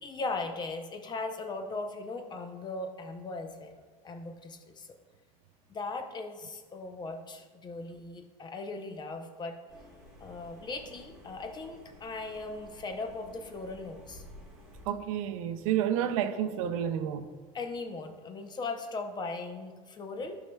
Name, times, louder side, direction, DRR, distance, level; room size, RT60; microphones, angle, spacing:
voice 1, 0.0-3.8 4.0-4.9 5.7-9.6 10.2-14.2 17.5-20.4, left 3 dB, 25° left, 0.7 m, -38 dB
sound 1, 9.7-14.9, equal, 5° right, 1.5 m, -53 dB
voice 2, 14.8-17.3, right 10 dB, 80° right, 0.5 m, -30 dB
11.0 x 5.5 x 2.3 m
supercardioid pair, 120°, 17 cm